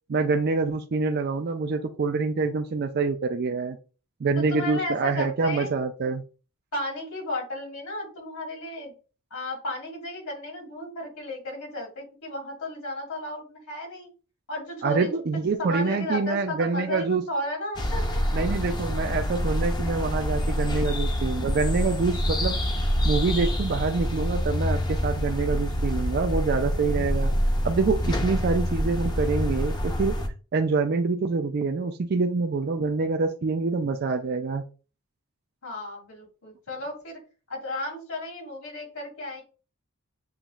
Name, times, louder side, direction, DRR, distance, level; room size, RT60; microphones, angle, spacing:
voice 1, 0.1-3.8 4.2-6.2 14.8-17.2 18.3-22.6 23.0-27.3 27.6-30.2 30.5-34.6, right 4 dB, 45° right, 5 dB, 0.4 m, -26 dB
voice 2, 4.3-5.7 6.7-8.9 9.3-14.1 14.5-15.1 15.6-18.2 35.6-37.2 37.5-39.4, left 1 dB, 90° left, 0 dB, 2.6 m, -34 dB
sound 1, 17.8-30.3, equal, 20° left, 0.6 m, -26 dB
7.2 x 3.0 x 2.4 m, 0.34 s
head